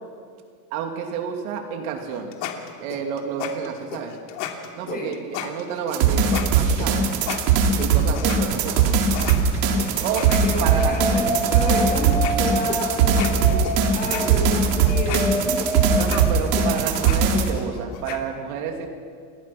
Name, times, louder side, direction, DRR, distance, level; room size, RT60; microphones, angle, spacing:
voice 1, 0.7-2.3 2.8-4.2 4.8-7.1 7.8-9.2 10.0-10.3 10.6-11.2 11.7-11.8 14.2-14.5 15.9-18.9, right 7 dB, 60° right, 3 dB, 2.8 m, -30 dB
sound 1, 2.0-8.4 8.8-11.2 11.8-11.9 12.1-18.2, left 11 dB, 90° left, 3.1 m, -34 dB
sound 2, 5.9-17.5, right 6 dB, 90° right, 3.7 m, -20 dB
sound 3, 10.2-16.7, right 1 dB, ahead, 0.6 m, -28 dB
voice 2, 10.3-13.6 13.9-15.8, left 2 dB, 20° left, -1 dB, 5.5 m, -30 dB
29.0 x 21.0 x 6.0 m, 2.1 s
supercardioid pair, 175°, 48 cm